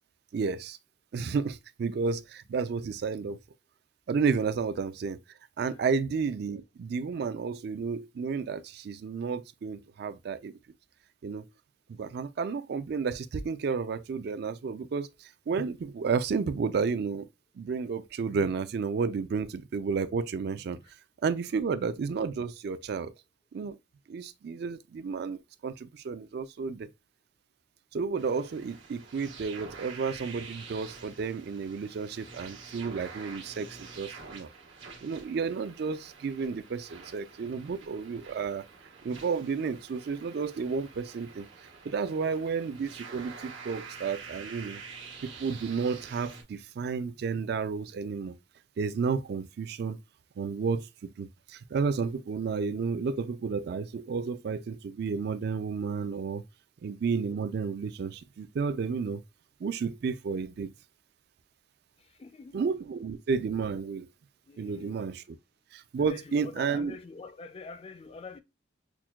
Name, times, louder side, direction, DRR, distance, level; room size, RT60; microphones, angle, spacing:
voice 1, 0.3-0.8 1.1-3.4 4.1-5.2 5.6-10.5 11.2-11.5 11.9-17.3 17.6-20.8 21.2-23.1 23.5-23.8 24.1-26.9 27.9-34.5 35.0-38.6 39.0-41.5 41.8-44.8 45.2-48.3 48.8-50.0 50.4-56.4 56.8-59.2 59.6-60.7 62.5-64.1 64.6-65.2 65.7-66.9, right 5 dB, 55° right, 0.3 m, -32 dB
sound 1, 28.2-46.4, right 5 dB, 90° right, 1.2 m, -47 dB
voice 2, 62.2-62.6 64.5-65.0 66.0-68.4, left 4 dB, 30° left, 0.3 m, -45 dB
5.9 x 2.2 x 2.3 m
head